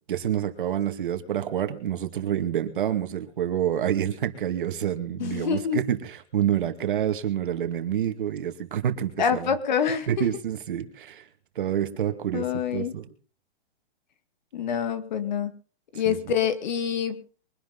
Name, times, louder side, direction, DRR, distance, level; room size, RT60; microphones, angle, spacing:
voice 1, 0.1-9.6 10.1-11.2 11.6-13.1 16.1-16.2, right 10 dB, 50° right, 7 dB, 2.3 m, -28 dB
voice 2, 5.2-5.8 9.2-10.2 12.3-12.9 14.5-15.6 15.9-17.2, left 7 dB, 45° left, 11 dB, 2.1 m, -26 dB
23.5 x 11.5 x 4.0 m, 0.38 s
hypercardioid pair, 180°, 33 cm